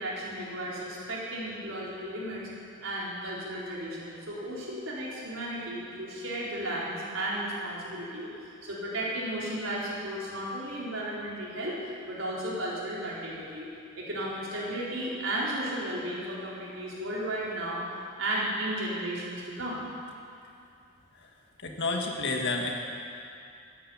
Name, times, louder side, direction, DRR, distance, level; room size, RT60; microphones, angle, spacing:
voice 1, 0.0-2.4 2.8-11.7 12.1-13.7 14.0-17.8 18.2-19.9, right 1 dB, 85° right, -6 dB, 4.2 m, -34 dB
voice 2, 21.6-22.7, left 3 dB, 65° left, 1 dB, 2.0 m, -30 dB
14.0 x 9.8 x 8.8 m, 2.5 s
head